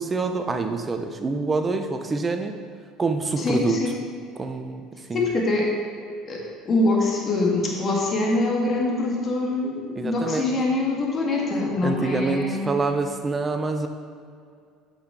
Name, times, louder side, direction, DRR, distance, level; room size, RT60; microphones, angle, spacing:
voice 1, 0.0-2.5 3.0-3.8 4.4-5.2 10.0-10.5 11.8-13.9, right 3 dB, 25° right, 6 dB, 0.8 m, -26 dB
voice 2, 3.4-4.0 5.1-5.7 6.3-12.7, left 2 dB, 40° left, -1 dB, 2.0 m, -24 dB
8.5 x 5.9 x 4.8 m, 2.3 s
hypercardioid pair, 75°, 0 cm